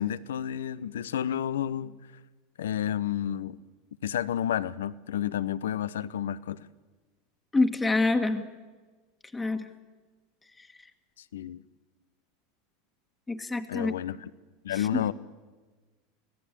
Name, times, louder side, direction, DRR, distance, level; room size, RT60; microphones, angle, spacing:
voice 1, 0.0-2.0 2.6-3.6 4.0-6.7 11.3-11.6 13.7-14.3 14.6-15.1, left 10 dB, 70° left, 18 dB, 0.8 m, -30 dB
voice 2, 7.5-8.4 9.3-9.7 13.3-13.9 14.7-15.1, left 3 dB, 15° left, 6 dB, 1.7 m, -26 dB
25.0 x 17.0 x 9.0 m, 1.3 s
figure-of-eight pair, 80°, 0 cm